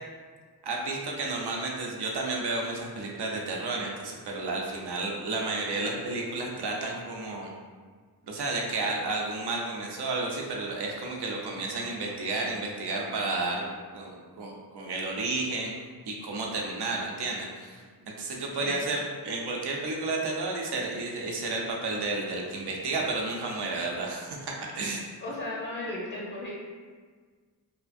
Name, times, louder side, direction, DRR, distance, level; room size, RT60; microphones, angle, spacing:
voice 1, 0.6-7.5 8.3-15.7 16.1-25.1, right 3 dB, 80° right, -1 dB, 0.6 m, -32 dB
voice 2, 25.2-26.6, left 1 dB, 50° left, -6 dB, 0.8 m, -35 dB
2.8 x 2.4 x 2.5 m, 1.5 s
cardioid pair, 45°, 40 cm